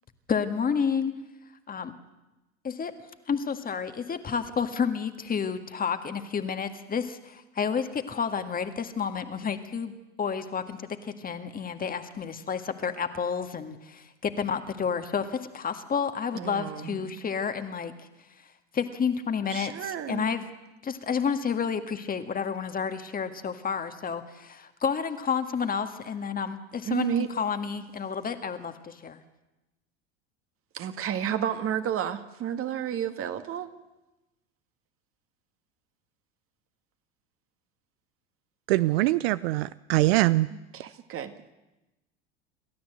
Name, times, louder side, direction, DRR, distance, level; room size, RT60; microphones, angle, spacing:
voice 1, 0.3-1.1 1.7-1.9 2.6-2.9 3.3-9.9 10.2-18.1 18.7-20.5 20.8-29.2, left 6 dB, 25° left, 8 dB, 1.8 m, -30 dB
voice 2, 16.3-17.1 19.5-20.2 26.8-27.3 30.7-33.7 40.5-41.3, right 9 dB, 40° right, 8 dB, 2.0 m, -31 dB
voice 3, 38.7-40.5, right 18 dB, 60° right, 16 dB, 0.6 m, -23 dB
28.0 x 13.0 x 8.0 m, 1.0 s
hypercardioid pair, 80°, 34 cm